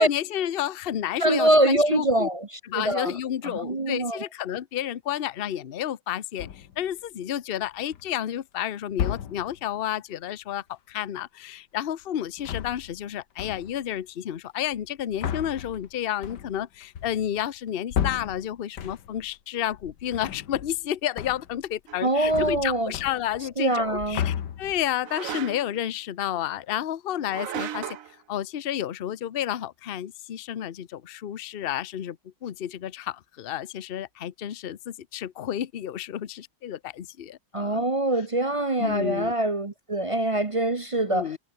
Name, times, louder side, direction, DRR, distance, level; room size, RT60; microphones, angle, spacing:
voice 1, 0.0-2.3 2.7-27.9 28.3-32.2 32.4-37.8 38.8-39.3 41.1-41.4, left 11 dB, 45° left, 0.7 m, -31 dB
voice 2, 1.2-2.5 2.7-3.1 3.4-4.2 22.0-22.9 23.6-24.2 37.5-41.4, right 1 dB, 30° right, 0.6 m, -24 dB
sound 1, 6.4-6.9 7.6-8.2 8.9-9.7 12.3-13.1 13.4-13.9 14.7-19.3 19.7-20.9 21.2-21.7 21.9-23.5 23.8-24.9, left 9 dB, 70° left, 1.8 m, -34 dB
sound 2, 21.9-22.0 25.0-25.8 27.3-28.1, right 10 dB, 55° right, 1.1 m, -35 dB
omnidirectional pair, 1.9 m